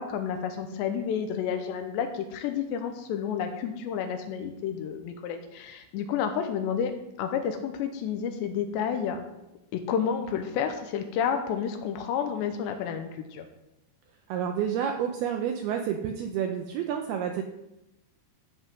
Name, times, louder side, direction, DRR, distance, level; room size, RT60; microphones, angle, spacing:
voice 1, 0.0-6.9 7.2-9.2 9.7-13.4, left 7 dB, 75° left, 6 dB, 3.0 m, -30 dB
voice 2, 14.3-17.4, right 8 dB, 90° right, 4 dB, 2.2 m, -29 dB
13.5 x 5.5 x 6.2 m, 0.90 s
omnidirectional pair, 5.3 m